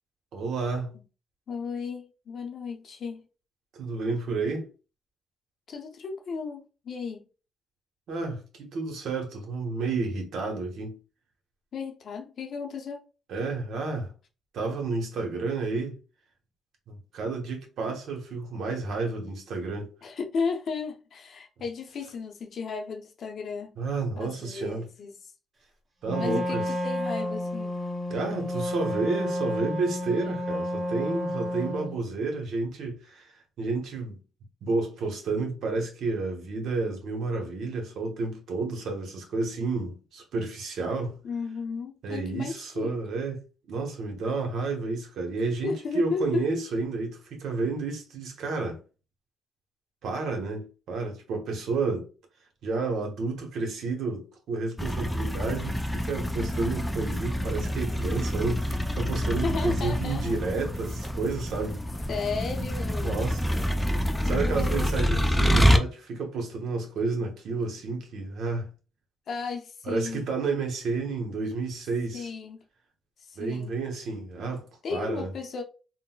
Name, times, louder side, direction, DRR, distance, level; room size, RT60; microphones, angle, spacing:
voice 1, 0.3-1.0 3.7-4.7 8.1-11.0 13.3-14.1 14.5-16.0 16.9-19.9 23.8-24.9 26.0-26.7 28.1-34.2 34.6-41.1 42.0-43.4 43.7-48.8 50.0-52.1 52.6-61.8 63.0-63.9 64.2-68.7 69.8-72.3 73.4-74.6 74.9-75.3, right 3 dB, 75° right, 0.9 m, -31 dB
voice 2, 1.5-3.2 5.7-7.2 11.7-13.0 20.0-23.7 24.2-25.1 26.2-27.8 41.2-43.0 45.6-46.5 59.4-60.4 62.1-63.2 64.2-65.3 69.3-70.3 72.1-72.6 73.2-73.8 74.8-75.6, left 5 dB, 60° left, 0.6 m, -34 dB
Wind instrument woodwind instrument, 26.0-32.0, left 1 dB, 35° right, 1.2 m, -31 dB
sound 1, 54.8-65.8, equal, 5° left, 0.4 m, -27 dB
3.8 x 2.1 x 2.2 m
cardioid pair, 90°, 0 cm